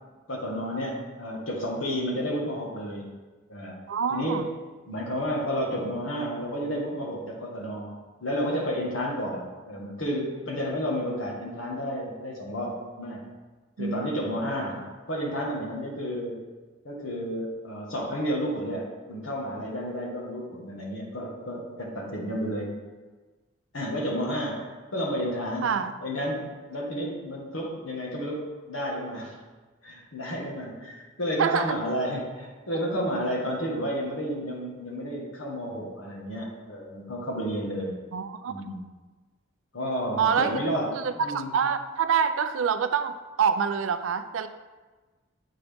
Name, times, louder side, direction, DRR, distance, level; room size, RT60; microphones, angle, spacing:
voice 1, 0.3-3.1 3.5-3.8 4.1-4.5 4.8-13.2 13.8-14.8 15.1-16.4 16.8-22.7 23.7-25.7 26.0-29.3 29.8-38.0 38.5-38.9 39.7-41.6, equal, 80° left, -2 dB, 1.4 m, -31 dB
voice 2, 3.9-4.4 13.8-14.0 25.6-25.9 31.4-31.8 38.1-38.5 40.2-40.6 40.9-44.5, right 7 dB, 80° right, 10 dB, 0.4 m, -26 dB
8.2 x 3.9 x 3.5 m, 1.3 s
head